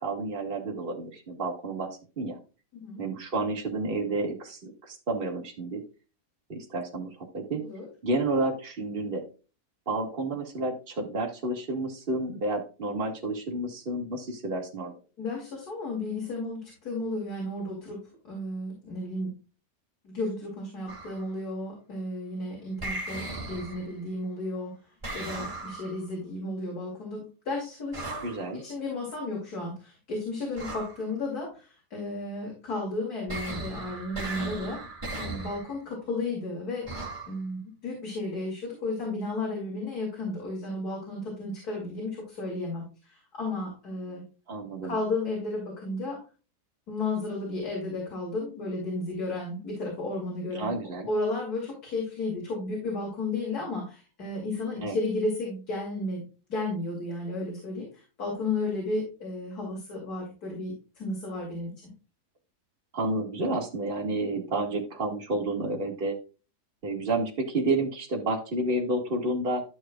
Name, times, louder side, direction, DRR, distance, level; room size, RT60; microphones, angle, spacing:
voice 1, 0.0-2.4 3.0-5.8 6.5-7.6 8.0-9.2 9.9-14.9 28.2-28.6 44.5-45.0 50.6-51.1 54.8-55.0 62.9-66.2 66.8-69.6, right 2 dB, 35° right, 0 dB, 1.9 m, -30 dB
voice 2, 15.2-19.3 20.0-24.7 25.1-28.2 28.6-34.8 35.1-36.9 37.3-44.2 44.8-46.2 46.9-50.7 51.1-56.2 56.5-61.7, left 2 dB, 80° left, -2 dB, 3.2 m, -33 dB
sound 1, 20.9-21.3 22.8-24.0 25.0-26.0 27.9-28.5 30.6-31.0 33.3-35.7 36.9-37.4, right 2 dB, 20° right, 2.6 m, -37 dB
12.5 x 6.3 x 2.3 m, 0.33 s
omnidirectional pair, 1.6 m